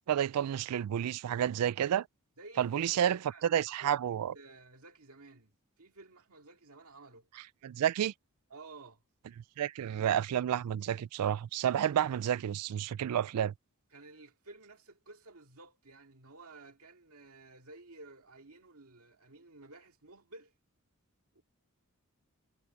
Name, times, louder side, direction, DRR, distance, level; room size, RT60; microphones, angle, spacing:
voice 1, 0.1-2.1 2.6-3.2 3.5-4.3 7.6-8.1 9.6-13.5, right 10 dB, 85° right, 0.3 m, -30 dB
voice 2, 2.4-4.1 4.3-5.5 5.8-7.3 8.5-9.0 13.9-20.5 21.3-21.4, right 2 dB, 70° right, 2.3 m, -53 dB
head